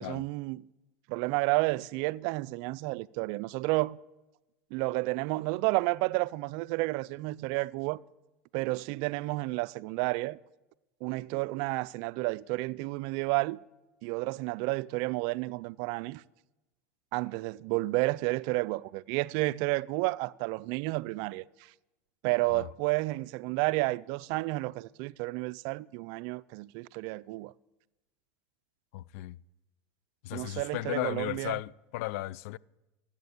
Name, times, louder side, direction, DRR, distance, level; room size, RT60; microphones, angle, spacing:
voice 1, 0.0-0.7 1.1-4.0 4.7-8.0 8.5-10.4 11.0-13.6 14.0-16.2 17.1-21.4 22.2-27.5 30.3-31.6, right 22 dB, 60° right, 0.4 m, -31 dB
voice 2, 28.9-29.4 30.2-32.6, left 17 dB, 70° left, 0.4 m, -35 dB
14.0 x 8.6 x 8.2 m
supercardioid pair, 100°, 8 cm